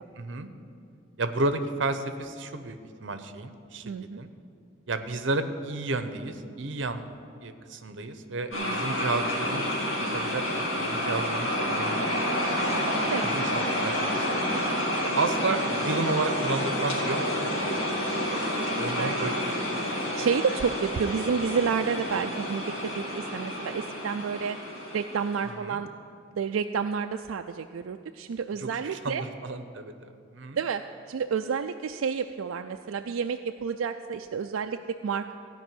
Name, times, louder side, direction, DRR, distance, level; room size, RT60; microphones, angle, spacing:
voice 1, 0.2-0.5 1.2-4.3 4.9-7.0 7.4-12.3 13.2-14.6 15.0-18.1 18.8-19.3 19.6-19.7 25.4-25.8 28.6-30.6, right 3 dB, 65° right, 9 dB, 0.8 m, -32 dB
voice 2, 3.8-4.2 8.5-8.8 12.7-13.3 14.5-14.6 14.9-15.1 18.9-19.2 20.2-24.6 24.9-25.9 26.3-29.2 30.6-30.8 31.1-35.3, right 6 dB, 90° right, 6 dB, 0.4 m, -30 dB
sound 1, 8.5-25.5, equal, 75° left, 2.6 m, -29 dB
15.5 x 5.3 x 9.2 m, 2.4 s
head